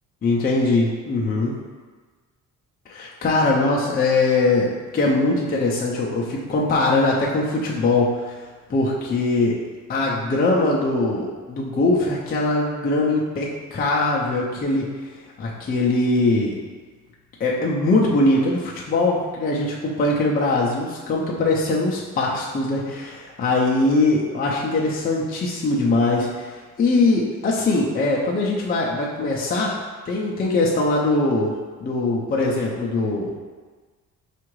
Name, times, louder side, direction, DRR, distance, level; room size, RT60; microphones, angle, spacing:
voice 1, 0.2-1.6 2.9-8.4 8.7-9.6 9.9-14.9 15.4-16.6 17.4-29.8 30.1-31.5 31.8-33.3, left 2 dB, 25° left, -3 dB, 0.4 m, -21 dB
4.6 x 2.5 x 3.0 m, 1.4 s
cardioid pair, 135°, 35 cm